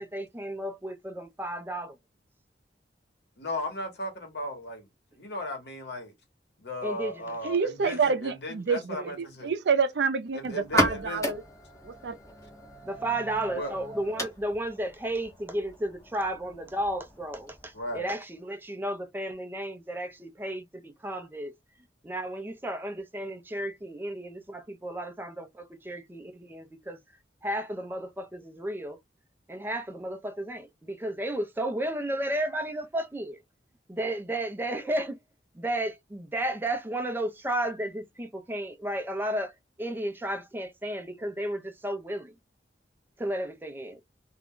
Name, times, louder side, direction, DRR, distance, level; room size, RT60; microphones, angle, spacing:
voice 1, 0.0-2.0 6.8-7.4 8.9-9.1 12.8-21.5 22.0-27.0 27.4-29.0 29.5-33.4 33.9-35.2 35.5-39.5 39.8-42.3 43.2-44.0, right 1 dB, 10° right, 0.4 m, -33 dB
voice 2, 3.4-4.9 5.2-6.1 6.6-9.5 10.3-11.3 13.5-13.8 17.7-18.1, left 1 dB, 65° left, 1.1 m, -36 dB
voice 3, 7.4-9.1 9.4-11.4 11.8-12.2, right 5 dB, 70° right, 0.5 m, -27 dB
sound 1, 10.6-18.0, left 1 dB, 15° left, 0.8 m, -35 dB
2.4 x 2.1 x 3.5 m
head